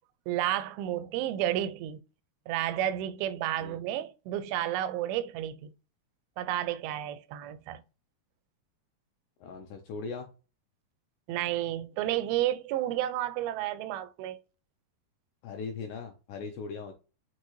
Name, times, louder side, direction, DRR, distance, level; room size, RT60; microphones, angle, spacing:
voice 1, 0.3-2.0 2.5-5.7 6.4-7.8 11.3-14.4, right 12 dB, 90° right, 2.4 m, -31 dB
voice 2, 9.4-10.3 15.4-16.9, left 4 dB, 80° left, 1.8 m, -39 dB
6.0 x 2.7 x 2.9 m
omnidirectional pair, 4.3 m